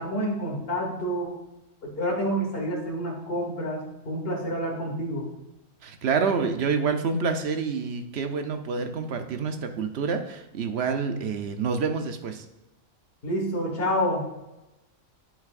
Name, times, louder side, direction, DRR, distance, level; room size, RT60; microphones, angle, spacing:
voice 1, 0.0-1.4 1.9-5.3 13.2-14.3, equal, 50° left, -2 dB, 2.3 m, -28 dB
voice 2, 5.8-12.4, right 5 dB, 60° right, 6 dB, 1.0 m, -27 dB
9.5 x 8.3 x 2.5 m, 0.96 s
omnidirectional pair, 1.3 m